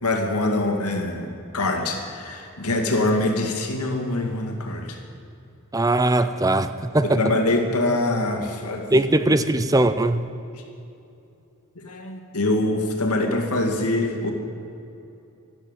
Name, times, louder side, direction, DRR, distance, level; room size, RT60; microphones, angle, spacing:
voice 1, 0.0-5.0 7.0-8.9 11.8-14.3, left 2 dB, 90° left, 3 dB, 2.3 m, -24 dB
voice 2, 5.7-7.2 8.9-10.2, right 2 dB, 15° right, 12 dB, 0.5 m, -20 dB
13.0 x 12.0 x 9.0 m, 2.7 s
head